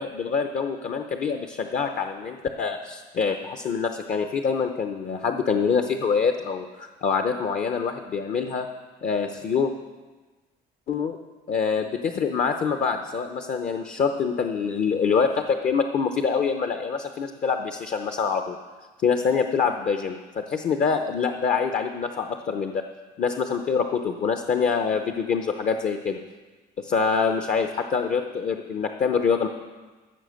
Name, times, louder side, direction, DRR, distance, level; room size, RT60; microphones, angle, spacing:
voice 1, 0.0-8.7 9.0-9.7 10.9-11.2 11.5-18.6 19.0-22.8 23.2-26.2 26.8-29.5, left 5 dB, 50° left, 6 dB, 0.8 m, -25 dB
14.5 x 6.8 x 6.4 m, 1.3 s
cardioid pair, 110°, 17 cm